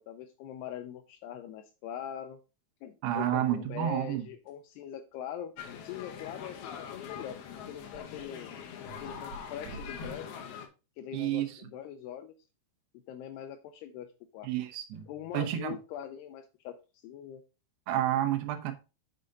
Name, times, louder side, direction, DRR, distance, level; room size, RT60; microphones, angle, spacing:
voice 1, 0.0-2.4 2.8-5.5 5.8-7.4 7.7-8.5 9.0-10.3 11.0-12.3 13.1-14.5 15.1-17.4, left 10 dB, 90° left, 2.4 m, -42 dB
voice 2, 3.0-4.3 11.1-11.6 14.4-15.0 15.3-15.8 17.9-18.7, right 12 dB, 75° right, 2.8 m, -30 dB
sound 1, 4.5-4.6 7.9-8.2 8.8-10.2, right 2 dB, 50° right, 3.1 m, -46 dB
sound 2, 5.6-10.7, left 8 dB, 70° left, 2.7 m, -43 dB
sound 3, 8.8-10.4 14.9-16.1, right 4 dB, 15° left, 3.0 m, -62 dB
6.5 x 6.4 x 3.9 m
omnidirectional pair, 5.4 m